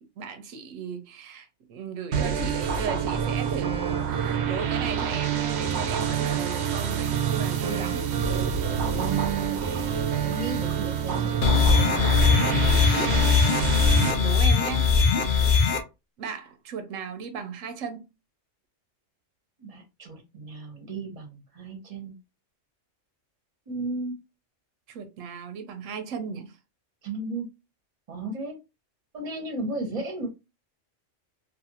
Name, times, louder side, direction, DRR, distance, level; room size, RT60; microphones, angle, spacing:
voice 1, 0.2-8.1 12.9-13.4 13.7-14.9 16.2-18.1 24.9-26.5, right 6 dB, 90° right, 1.0 m, -36 dB
sound 1, 2.1-14.1, right 8 dB, 65° right, 0.8 m, -27 dB
voice 2, 8.8-9.6 9.9-11.4 19.6-22.1 23.7-24.2 27.0-27.5 28.1-28.6 29.1-30.3, right 3 dB, 30° right, 0.9 m, -34 dB
sound 2, 11.4-15.8, left 5 dB, 60° left, 0.5 m, -20 dB
2.6 x 2.5 x 2.8 m
omnidirectional pair, 1.3 m